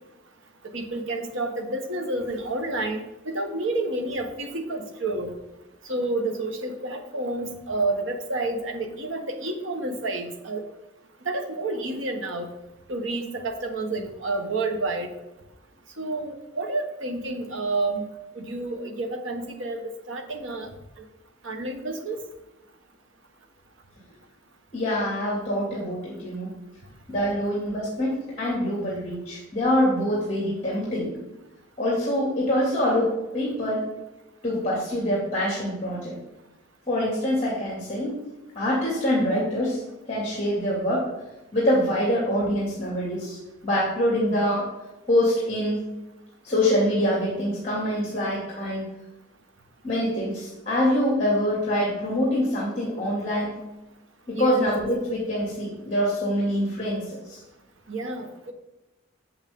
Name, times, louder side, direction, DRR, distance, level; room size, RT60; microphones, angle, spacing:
voice 1, 0.7-5.3 5.9-10.6 11.2-12.5 12.9-15.1 16.0-18.0 18.3-19.8 20.1-20.7 21.4-22.2 54.4-54.7 57.9-58.5, right 2 dB, 85° right, 4 dB, 1.3 m, -29 dB
voice 2, 24.7-26.5 27.1-31.2 31.8-33.8 34.4-36.1 36.9-38.2 38.6-39.8 40.1-41.1 41.5-43.4 43.6-44.7 45.1-45.8 46.4-48.9 49.8-53.6 54.3-57.4, equal, 35° left, -5 dB, 2.4 m, -25 dB
8.1 x 7.9 x 3.7 m, 0.98 s
head